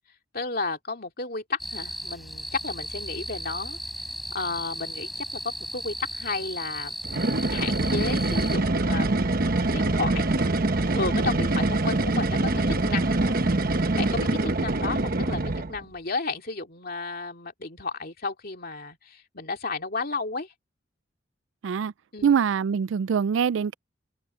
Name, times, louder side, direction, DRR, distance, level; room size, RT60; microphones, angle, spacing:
voice 1, 0.3-3.8 4.3-9.1 9.7-10.3 10.9-13.5 14.0-20.5 22.1-22.3, left 3 dB, 50° left, 2.8 m, -33 dB
sound 1, 1.6-8.6, equal, ahead, 6.7 m, -36 dB
sound 2, 7.0-15.8, right 2 dB, 45° right, 1.1 m, -24 dB
voice 2, 22.2-23.7, right 7 dB, 70° right, 0.3 m, -23 dB
open air
head